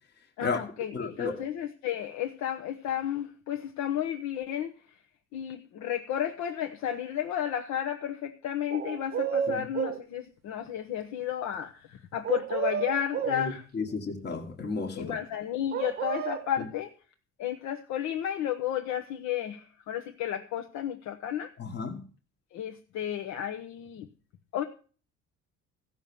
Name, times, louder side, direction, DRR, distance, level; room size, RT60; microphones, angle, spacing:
voice 1, 0.4-5.0 5.3-13.7 14.9-16.9 17.4-21.5 22.5-24.1 24.5-24.6, left 10 dB, 70° left, 1.1 m, -32 dB
voice 2, 0.9-1.4 9.5-9.7 13.3-15.1 21.6-22.0, left 4 dB, 35° left, 1.5 m, -33 dB
sound 1, 8.7-10.0 12.2-13.4 15.7-16.5, right 8 dB, 35° right, 0.8 m, -31 dB
15.0 x 6.1 x 6.9 m
cardioid pair, 155°, 29 cm